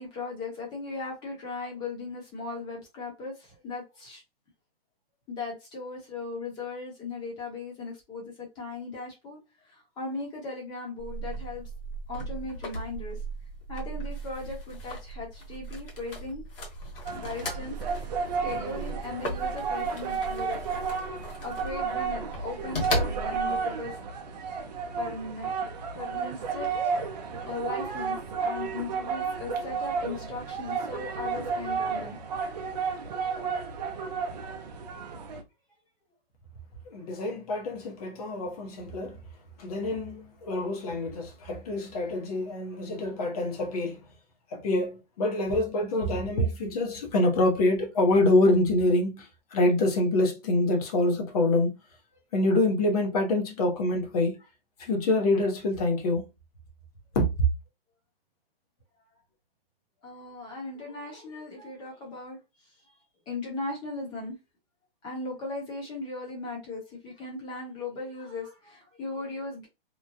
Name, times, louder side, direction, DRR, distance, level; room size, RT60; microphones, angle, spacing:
voice 1, 0.0-4.2 5.3-9.4 9.7-11.7 12.1-13.2 13.7-16.4 17.1-17.8 18.4-20.6 21.4-24.0 24.9-26.7 27.4-32.2 38.7-38.8 45.2-45.3 60.0-62.4 63.3-64.4 65.0-69.7, left 3 dB, 15° left, 1.0 m, -38 dB
sound 1, 11.0-23.6, right 1 dB, 65° left, 1.4 m, -36 dB
sound 2, 17.1-35.4, right 5 dB, 45° right, 0.6 m, -32 dB
voice 2, 36.9-39.2 39.6-44.0 44.5-51.8 52.3-54.4 54.8-56.2 57.1-57.2, left 2 dB, 40° left, 0.9 m, -26 dB
3.0 x 2.2 x 2.5 m
hypercardioid pair, 155°, 30 cm